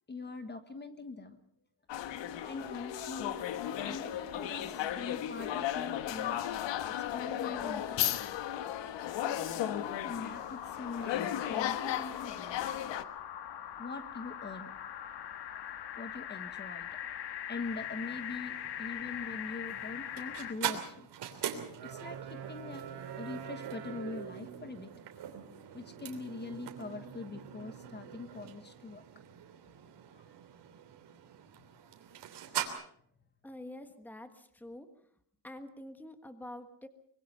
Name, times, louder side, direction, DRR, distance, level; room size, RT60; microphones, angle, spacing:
voice 1, 0.1-1.4 2.5-3.4 3.9-6.4 7.0-8.0 9.2-12.7 13.8-14.7 15.8-16.9 17.5-21.5 21.8-22.8 23.2-24.9 25.7-29.0 30.1-30.4, left 3 dB, 25° left, 9 dB, 1.4 m, -43 dB
sound 1, 1.9-13.0, left 11 dB, 90° left, 1.4 m, -35 dB
sound 2, 10.1-20.5, left 10 dB, 65° left, 1.6 m, -42 dB
sound 3, 17.6-32.7, right 10 dB, 70° right, 3.3 m, -43 dB
voice 2, 33.4-34.9 35.4-36.9, left 1 dB, 5° left, 8 dB, 1.4 m, -47 dB
24.5 x 22.5 x 5.5 m, 0.65 s
cardioid pair, 160°, 43 cm